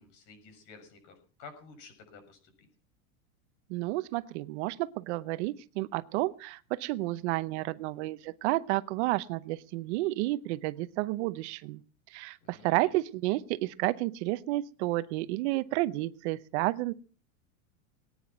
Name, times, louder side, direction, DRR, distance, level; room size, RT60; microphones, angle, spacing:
voice 1, 0.0-2.7 12.4-12.7, left 4 dB, 45° left, 7 dB, 6.6 m, -52 dB
voice 2, 3.7-11.8 12.1-16.9, right 18 dB, 55° right, 15 dB, 0.8 m, -31 dB
21.5 x 9.7 x 6.0 m, 0.40 s
supercardioid pair, 150°, 42 cm